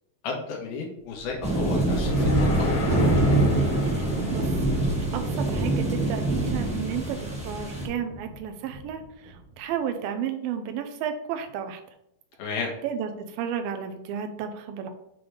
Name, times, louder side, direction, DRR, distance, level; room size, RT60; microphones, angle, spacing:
voice 1, 0.2-2.7 12.4-12.7, left 4 dB, 90° left, -1 dB, 3.2 m, -33 dB
sound 1, 1.2-5.5, left 2 dB, 70° left, 3.0 m, -35 dB
sound 2, 1.4-7.9, right 1 dB, 10° right, 0.3 m, -25 dB
Thunder, 2.9-9.7, right 2 dB, 70° right, 1.8 m, -34 dB
voice 2, 5.1-11.8 12.8-13.1 13.4-14.9, right 8 dB, 85° right, 7 dB, 2.5 m, -32 dB
7.8 x 3.4 x 4.7 m, 0.76 s
omnidirectional pair, 4.1 m